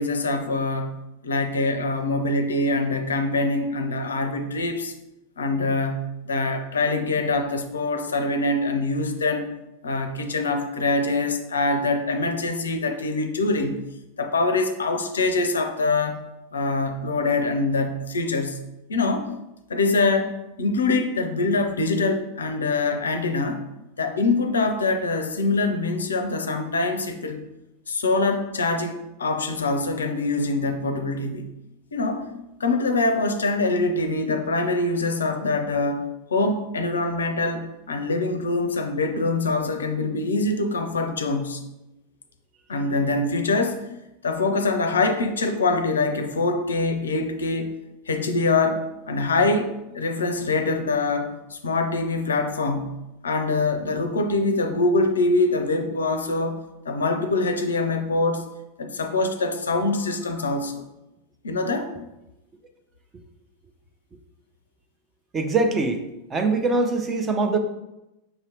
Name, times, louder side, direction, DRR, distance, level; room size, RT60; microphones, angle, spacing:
voice 1, 0.0-4.9 5.4-9.5 9.8-13.8 14.2-16.2 16.5-18.6 18.9-19.3 19.7-23.7 24.0-27.5 27.9-31.5 31.9-32.3 32.6-36.1 36.3-41.6 42.7-43.8 44.2-47.7 48.1-53.0 53.2-56.6 56.9-58.5 58.8-60.8 61.4-61.9, left 3 dB, 70° left, 7 dB, 0.4 m, -24 dB
voice 2, 65.3-66.0 66.3-67.6, right 3 dB, 20° right, 5 dB, 0.5 m, -23 dB
5.7 x 2.8 x 3.2 m, 0.93 s
figure-of-eight pair, 90°, 0 cm